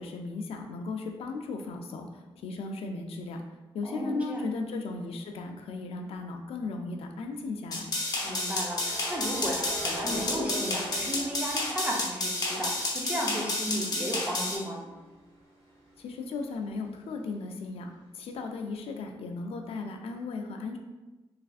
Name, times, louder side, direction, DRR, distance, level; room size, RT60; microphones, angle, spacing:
voice 1, 0.0-3.4 3.7-7.9 16.0-20.8, left 3 dB, 80° left, 3 dB, 0.4 m, -36 dB
voice 2, 3.8-4.5 8.2-14.8, equal, 15° right, -2 dB, 0.6 m, -34 dB
sound 1, 5.0-5.3 8.3-12.2 12.6-16.2, equal, 80° right, 1.0 m, -42 dB
sound 2, 7.7-14.6, left 2 dB, 40° left, 0.7 m, -31 dB
3.2 x 2.4 x 2.4 m, 1.1 s
cardioid pair, 105°, 10 cm